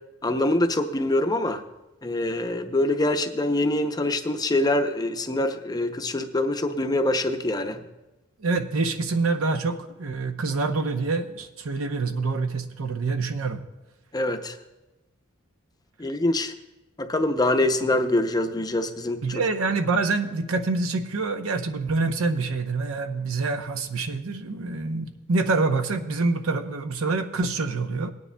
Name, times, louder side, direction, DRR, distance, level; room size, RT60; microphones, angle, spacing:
voice 1, 0.2-1.6 2.0-7.8 14.1-14.6 16.0-16.5 17.0-19.2, left 1 dB, 20° left, 6 dB, 0.5 m, -24 dB
voice 2, 8.4-13.6 19.2-28.1, right 3 dB, 80° right, 6 dB, 0.7 m, -26 dB
20.5 x 9.5 x 2.2 m, 1.1 s
head